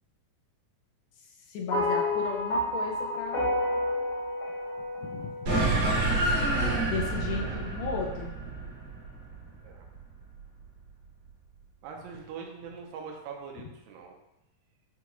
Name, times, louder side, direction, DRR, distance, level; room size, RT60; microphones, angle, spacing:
voice 1, 1.5-3.5 5.0-5.3 6.8-8.3, left 5 dB, 80° left, 0 dB, 2.0 m, -35 dB
sound 1, 1.7-6.1, left 1 dB, 40° left, 1.2 m, -30 dB
sound 2, 5.5-10.2, right 2 dB, 60° right, 2.1 m, -28 dB
voice 2, 11.8-14.2, right 6 dB, 90° right, 1 dB, 2.4 m, -42 dB
6.1 x 2.4 x 2.9 m, 0.91 s
omnidirectional pair, 3.9 m